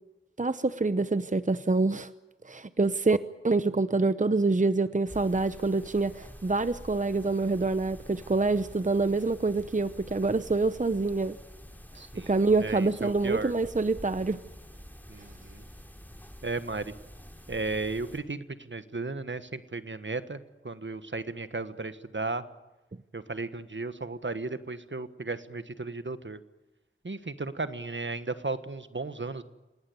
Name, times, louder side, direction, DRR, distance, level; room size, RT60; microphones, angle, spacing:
voice 1, 0.4-2.1 2.4-3.2 3.4-11.4 12.3-14.4, right 3 dB, 40° right, 13 dB, 0.8 m, -26 dB
sound 1, 5.1-18.2, equal, 10° left, 4.2 m, -48 dB
voice 2, 11.9-12.3 12.6-13.5 15.1-15.6 16.4-16.9 17.5-22.4 23.1-26.4 27.0-29.4, right 3 dB, 65° right, 11 dB, 1.4 m, -35 dB
27.5 x 18.5 x 9.6 m, 1.1 s
wide cardioid pair, 50°, 21 cm